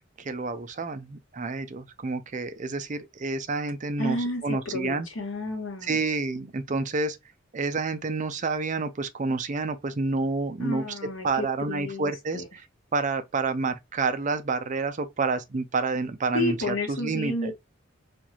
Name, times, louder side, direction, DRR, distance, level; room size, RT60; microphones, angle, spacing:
voice 1, 0.2-4.2 4.4-5.1 5.8-7.2 7.5-10.8 11.2-12.7 12.9-17.5, right 3 dB, 40° right, 0.5 m, -29 dB
voice 2, 4.0-6.0 10.6-12.5 16.3-17.5, left 2 dB, 80° left, 1.2 m, -31 dB
4.4 x 2.4 x 2.9 m
head